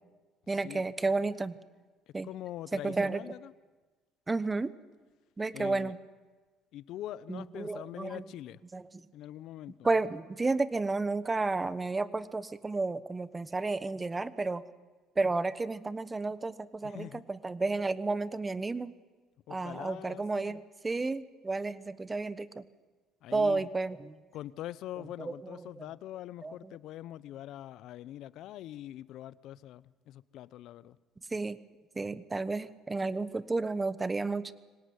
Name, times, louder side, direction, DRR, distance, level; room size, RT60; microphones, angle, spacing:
voice 1, 0.5-1.5 2.1-2.3 2.7-3.3 4.3-4.7 5.4-6.0 7.3-8.2 8.7-8.8 9.8-14.6 15.2-19.0 19.5-22.6 23.3-24.2 25.2-25.8 26.4-26.5 31.3-31.6 32.0-34.5, right 3 dB, 20° right, 16 dB, 1.2 m, -32 dB
voice 2, 2.2-3.5 5.5-5.9 6.7-8.6 9.1-9.9 16.8-17.2 19.5-20.6 23.2-23.7 24.3-31.0 31.3-31.4, left 13 dB, 70° left, 19 dB, 0.8 m, -43 dB
24.0 x 18.0 x 9.7 m, 1.3 s
supercardioid pair, 85°, 0 cm